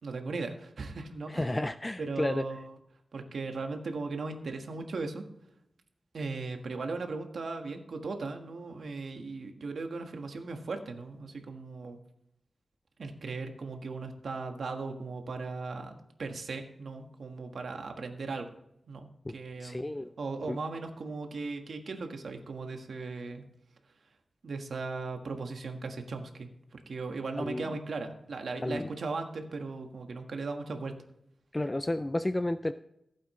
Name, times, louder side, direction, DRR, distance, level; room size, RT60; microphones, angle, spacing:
voice 1, 0.0-1.6 2.0-2.7 3.1-5.2 6.1-12.0 13.0-18.5 18.9-19.9 20.2-23.4 24.4-30.9, right 3 dB, 75° right, 5 dB, 1.5 m, -37 dB
voice 2, 1.3-2.4 19.3-19.4 19.6-20.1 20.5-20.6 27.4-27.8 28.6-28.9 31.5-32.7, left 1 dB, 20° left, 11 dB, 0.3 m, -32 dB
15.5 x 8.5 x 3.2 m, 0.79 s
wide cardioid pair, 110°, 0 cm